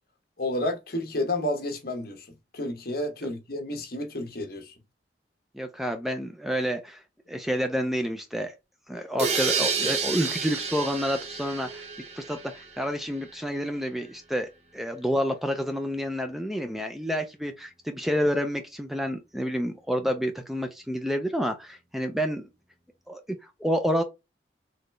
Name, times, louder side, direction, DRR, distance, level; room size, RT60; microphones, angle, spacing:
voice 1, 0.4-2.3 2.5-4.7, left 1 dB, 55° left, 1.2 m, -30 dB
voice 2, 5.5-7.0 7.3-8.5 8.9-11.9 12.1-22.5 23.1-24.0, equal, ahead, 0.4 m, -29 dB
sound 1, 9.2-12.9, right 5 dB, 35° right, 1.0 m, -30 dB
4.1 x 3.2 x 3.2 m
head